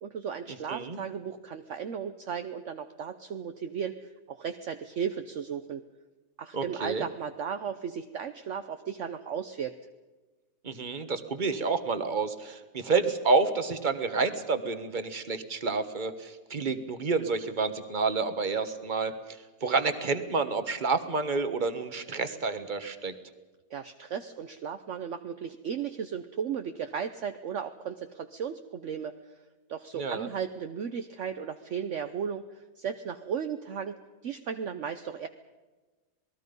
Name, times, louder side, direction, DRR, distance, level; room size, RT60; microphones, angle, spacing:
voice 1, 0.0-4.0 4.3-5.8 6.4-9.7 23.7-29.1 29.7-35.3, right 7 dB, 60° right, 8 dB, 1.1 m, -35 dB
voice 2, 0.7-1.0 6.5-7.0 10.6-19.1 19.6-23.1 29.9-30.3, right 4 dB, 35° right, 9 dB, 1.5 m, -29 dB
27.5 x 20.0 x 5.4 m, 1.2 s
omnidirectional pair, 1.5 m